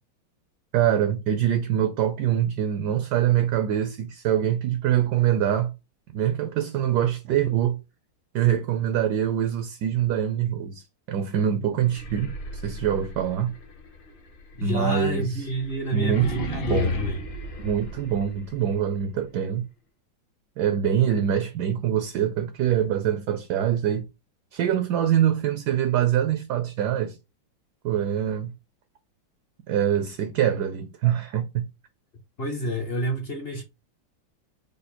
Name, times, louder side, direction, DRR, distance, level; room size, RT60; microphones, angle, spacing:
voice 1, 0.7-5.7 6.1-7.8 8.3-13.5 14.6-15.4 15.9-16.3 16.7-16.9 17.6-19.6 20.6-24.0 24.5-27.2 27.8-28.5 29.7-31.6, right 10 dB, 75° right, 1.0 m, -24 dB
sound 1, 11.8-18.7, left 2 dB, 70° left, 1.7 m, -34 dB
voice 2, 14.6-17.2 32.4-33.6, equal, 50° left, 0.7 m, -28 dB
5.1 x 2.1 x 4.1 m
omnidirectional pair, 2.1 m